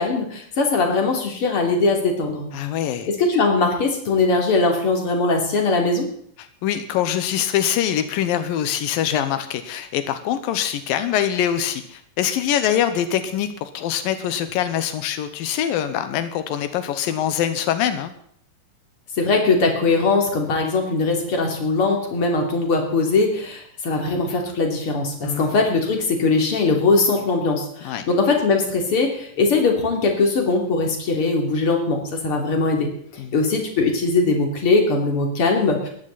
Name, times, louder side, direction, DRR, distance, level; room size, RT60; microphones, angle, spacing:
voice 1, 0.0-2.5 3.1-6.1 19.2-32.9 33.3-35.9, left 3 dB, 40° left, 2 dB, 3.9 m, -20 dB
voice 2, 2.5-3.1 6.6-18.1 25.2-25.5 27.8-28.1 33.2-33.3, left 10 dB, 90° left, 10 dB, 2.8 m, -24 dB
20.5 x 14.5 x 4.2 m, 0.64 s
omnidirectional pair, 3.9 m